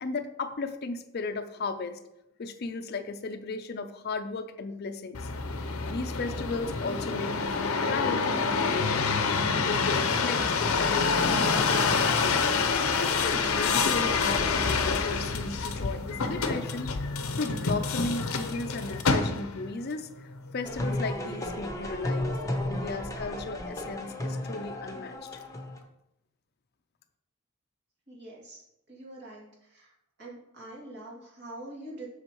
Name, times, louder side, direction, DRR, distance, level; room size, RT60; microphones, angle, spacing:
voice 1, 0.0-2.0 2.4-5.3 5.6-12.4 13.0-25.4, left 3 dB, 50° left, 9 dB, 0.4 m, -35 dB
sound 1, 5.1-19.7 20.3-20.8, left 4 dB, 85° left, 0.6 m, -27 dB
sound 2, 20.6-25.8, left 1 dB, 15° left, 0.8 m, -33 dB
voice 2, 28.1-28.6 28.9-29.9 30.2-32.1, right 1 dB, 50° right, -4 dB, 2.4 m, -44 dB
7.6 x 6.3 x 3.0 m, 0.86 s
head